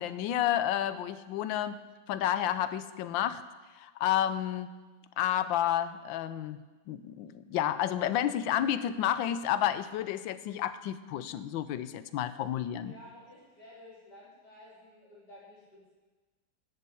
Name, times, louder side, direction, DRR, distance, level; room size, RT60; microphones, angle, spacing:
voice 1, 0.0-1.8 2.1-3.4 3.8-4.8 5.2-6.6 6.9-12.9, left 11 dB, 80° left, 13 dB, 1.3 m, -30 dB
voice 2, 12.8-15.9, left 1 dB, 60° left, -7 dB, 4.5 m, -53 dB
11.5 x 7.7 x 6.9 m, 1.3 s
omnidirectional pair, 2.1 m